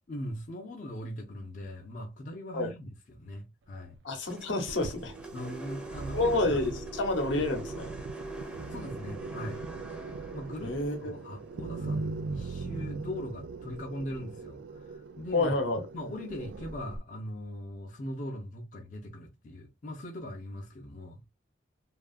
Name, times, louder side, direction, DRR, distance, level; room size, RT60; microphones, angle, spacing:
voice 1, 0.1-4.0 5.3-6.5 8.7-9.6 10.3-15.6 15.9-21.2, left 1 dB, 40° left, 0.4 m, -40 dB
voice 2, 4.0-5.1 6.1-7.9 10.6-11.1 15.3-15.8, left 2 dB, 75° left, 0.8 m, -29 dB
sound 1, 4.3-12.6, right 2 dB, 5° right, 0.5 m, -44 dB
sound 2, 4.7-17.0, right 4 dB, 70° right, 0.3 m, -40 dB
2.8 x 2.3 x 2.3 m
head